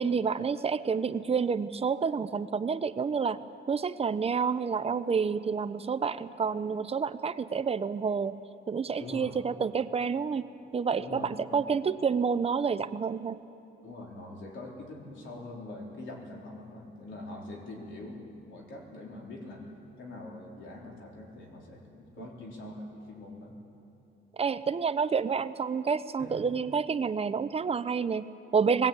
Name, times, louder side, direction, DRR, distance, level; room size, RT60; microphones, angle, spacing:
voice 1, 0.0-3.4 3.7-8.4 8.7-13.4 22.2-22.3 24.4-28.9, right 6 dB, 30° right, 12 dB, 0.6 m, -29 dB
voice 2, 9.0-9.3 11.0-11.6 13.8-18.2 18.5-19.7 20.0-23.5 26.2-26.4, left 2 dB, 75° left, -1 dB, 4.1 m, -43 dB
20.5 x 16.5 x 8.8 m, 2.8 s
cardioid pair, 130°, 20 cm